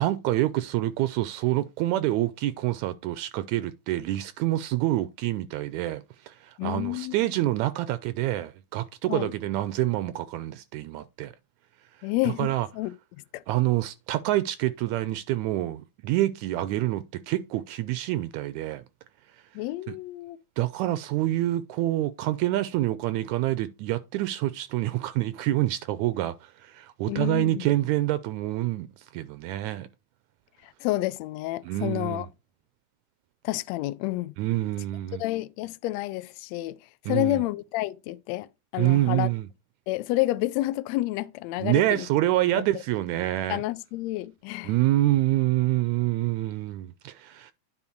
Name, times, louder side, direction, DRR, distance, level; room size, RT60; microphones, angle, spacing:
voice 1, 0.0-11.3 12.2-12.7 13.5-18.8 20.6-29.9 31.7-32.2 34.4-35.2 37.1-37.4 38.8-39.5 41.6-43.6 44.7-47.5, right 15 dB, 80° right, 1.8 m, -27 dB
voice 2, 6.6-7.2 9.1-9.3 12.0-12.9 13.3-13.4 19.5-20.4 27.1-27.7 30.6-32.3 33.4-34.3 35.2-36.8 37.1-38.5 38.7-39.3 39.9-42.0 42.5-42.6 43.5-44.7, left 17 dB, 80° left, 1.6 m, -29 dB
9.9 x 3.9 x 4.4 m
omnidirectional pair, 3.5 m